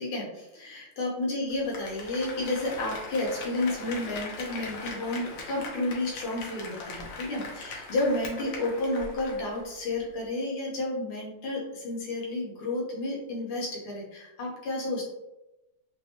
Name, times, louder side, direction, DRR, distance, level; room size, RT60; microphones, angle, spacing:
voice 1, 0.0-15.1, left 2 dB, 85° left, -2 dB, 1.9 m, -31 dB
Applause, 1.5-9.7 10.0-10.1, left 3 dB, 70° left, 1.3 m, -40 dB
3.9 x 2.7 x 2.8 m, 0.95 s
omnidirectional pair, 2.3 m